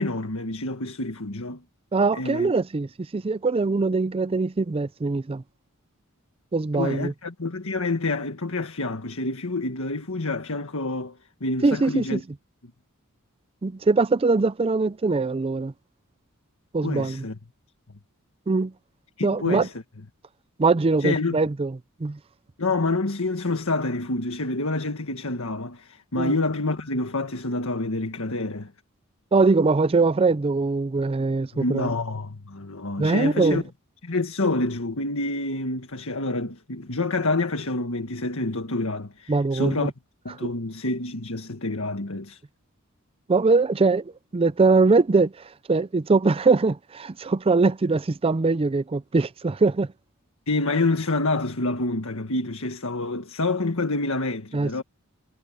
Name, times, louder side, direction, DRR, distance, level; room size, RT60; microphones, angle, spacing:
voice 1, 0.0-1.6 2.1-2.5 6.7-12.2 16.8-17.4 19.2-19.7 21.0-21.4 22.6-28.7 31.5-33.6 34.0-39.9 40.3-42.4 50.5-54.8, left 2 dB, 70° left, 1.7 m, -27 dB
voice 2, 1.9-5.4 6.5-7.1 11.6-12.2 13.6-15.7 16.7-17.2 18.5-18.7 19.2-19.7 20.6-21.7 22.0-22.2 26.2-26.3 29.3-31.9 33.0-33.6 39.3-39.9 40.4-40.5 43.3-49.9 54.5-54.8, right 3 dB, 25° right, 0.4 m, -22 dB
head